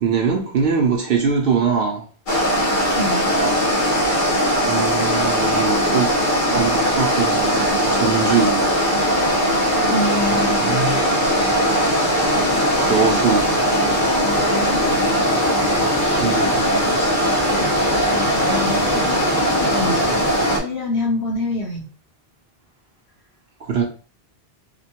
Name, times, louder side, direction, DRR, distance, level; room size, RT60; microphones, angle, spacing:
voice 1, 0.0-2.1 4.7-6.1 6.5-8.7 10.3-11.0 12.9-13.6 16.2-17.1 23.6-23.8, right 6 dB, 65° right, 0.7 m, -22 dB
sound 1, 2.3-20.6, equal, 55° left, 0.9 m, -19 dB
voice 2, 9.9-10.7 14.5-15.0 18.4-19.2 19.7-20.1 20.6-21.8, left 2 dB, 80° left, 1.0 m, -26 dB
2.9 x 2.2 x 2.8 m
omnidirectional pair, 1.0 m